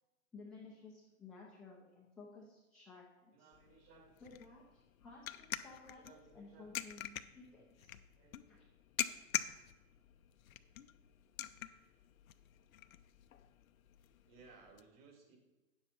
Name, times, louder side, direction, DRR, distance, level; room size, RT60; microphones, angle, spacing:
voice 1, 0.3-3.5 4.2-6.1 6.3-7.9 8.5-8.6, left 4 dB, ahead, -6 dB, 0.3 m, -56 dB
voice 2, 3.3-4.1 6.0-6.7 8.1-8.4 14.3-15.4, right 4 dB, 45° right, 2 dB, 2.4 m, -61 dB
sound 1, 3.5-14.8, left 10 dB, 85° left, 0.6 m, -46 dB
9.4 x 7.2 x 4.3 m, 1.1 s
hypercardioid pair, 135°, 41 cm